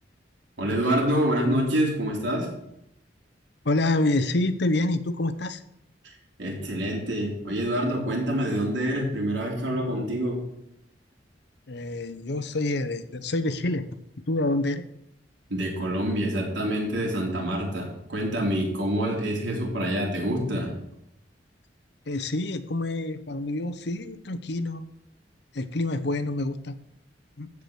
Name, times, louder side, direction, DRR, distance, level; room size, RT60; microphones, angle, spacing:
voice 1, 0.6-2.5 6.0-6.1 6.4-10.4 15.5-20.7, equal, 85° right, -1 dB, 3.7 m, -26 dB
voice 2, 3.6-5.6 11.7-13.9 14.3-14.8 19.4-19.5 22.1-24.9 25.5-26.7 27.4-27.5, left 2 dB, 65° left, 12 dB, 0.8 m, -27 dB
13.5 x 4.9 x 8.1 m, 0.79 s
head